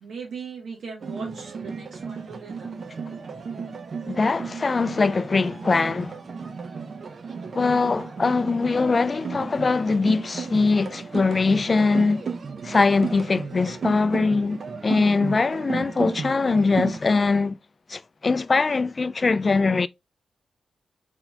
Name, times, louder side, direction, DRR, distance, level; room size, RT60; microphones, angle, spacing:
voice 1, 0.0-2.7, right 5 dB, 80° right, 1.2 m, -39 dB
sound 1, 1.0-17.0, right 5 dB, 55° right, 0.8 m, -34 dB
voice 2, 4.1-6.1 7.5-12.2 12.6-17.6 17.9-19.9, left 4 dB, 40° left, 0.3 m, -22 dB
4.5 x 4.1 x 2.3 m
cardioid pair, 80°, 0 cm